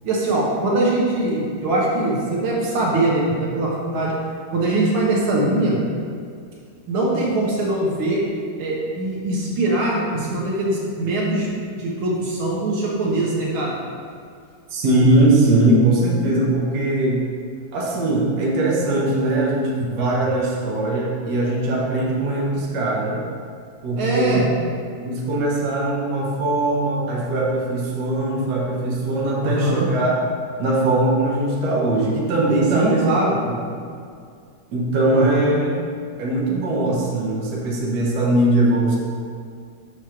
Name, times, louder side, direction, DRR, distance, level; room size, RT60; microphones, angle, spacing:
voice 1, 0.0-4.1 4.5-5.8 6.9-8.2 8.6-11.5 11.8-13.7 24.0-24.5 29.4-29.9 32.7-33.4 35.1-35.6, right 2 dB, 85° right, -4 dB, 2.1 m, -22 dB
voice 2, 14.7-17.2 17.7-23.2 23.8-24.4 25.0-30.1 30.6-33.1 33.4-33.5 34.7-35.7 36.2-39.0, right 2 dB, 60° right, -4 dB, 1.5 m, -20 dB
6.4 x 3.1 x 5.8 m, 2.2 s
omnidirectional pair, 2.2 m